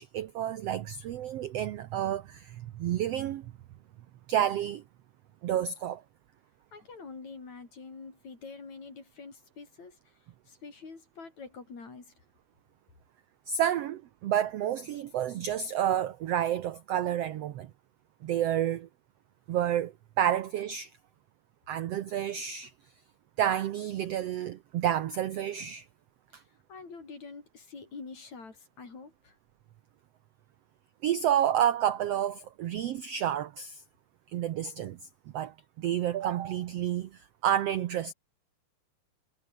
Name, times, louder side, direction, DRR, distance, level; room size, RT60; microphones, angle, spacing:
voice 1, 0.0-3.5 4.3-4.8 5.4-6.0 13.5-17.7 18.2-18.9 19.5-20.9 21.7-22.7 23.4-25.9 26.3-26.4 31.0-33.8 34.3-35.0 35.3-38.1, right 10 dB, 75° right, 1.4 m, -30 dB
voice 2, 6.7-12.2 26.7-29.4, left 4 dB, 55° left, 6.3 m, -46 dB
omnidirectional pair, 4.0 m